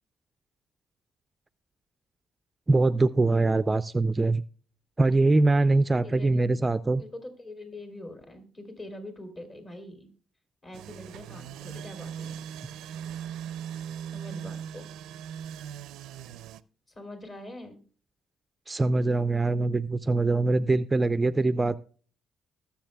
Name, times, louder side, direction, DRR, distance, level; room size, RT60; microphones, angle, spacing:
voice 1, 2.7-4.4 5.0-7.0 18.7-21.8, right 2 dB, 20° right, 14 dB, 0.4 m, -23 dB
voice 2, 6.0-6.6 7.0-10.1 10.6-12.5 14.1-14.9 16.9-17.8, left 1 dB, 35° left, 7 dB, 3.5 m, -44 dB
sound 1, 10.7-16.6, right 9 dB, 90° right, 0.5 m, -39 dB
21.0 x 7.1 x 2.3 m, 0.41 s
cardioid pair, 90°, 0 cm